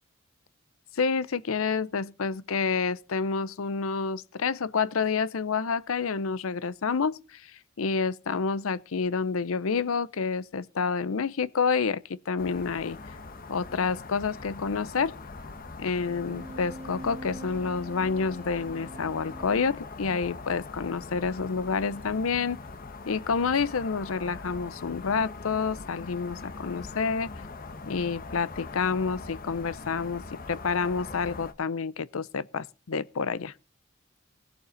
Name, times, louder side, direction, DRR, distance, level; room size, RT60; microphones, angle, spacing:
voice 1, 0.9-13.0 13.5-15.2 15.8-22.6 23.1-27.3 27.9-33.5, left 5 dB, 85° left, 0.6 m, -29 dB
sound 1, 12.4-31.5, left 3 dB, 45° left, 1.0 m, -42 dB
sound 2, 16.1-19.9 21.5-22.2, equal, 30° right, 1.1 m, -44 dB
18.5 x 7.3 x 3.9 m
head